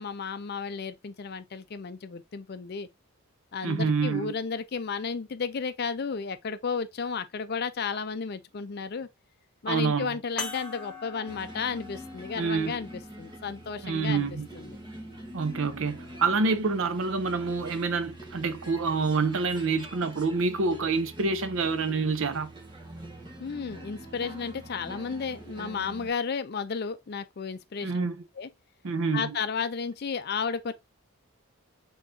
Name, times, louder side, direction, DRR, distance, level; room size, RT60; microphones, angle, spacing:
voice 1, 0.0-2.9 3.5-9.1 9.6-14.3 14.5-14.8 23.4-28.1 28.4-28.5 29.1-30.7, left 5 dB, 45° left, 0.4 m, -33 dB
voice 2, 3.6-4.3 9.7-10.2 12.4-12.8 13.8-14.5 15.3-22.5 27.8-28.2 28.8-29.3, right 4 dB, 60° right, 0.6 m, -27 dB
sound 1, 10.4-15.2 16.0-16.1 18.2-18.3, left 4 dB, 5° left, 1.2 m, -44 dB
sound 2, 11.3-26.1, right 1 dB, 20° right, 1.1 m, -45 dB
4.3 x 3.8 x 2.6 m
head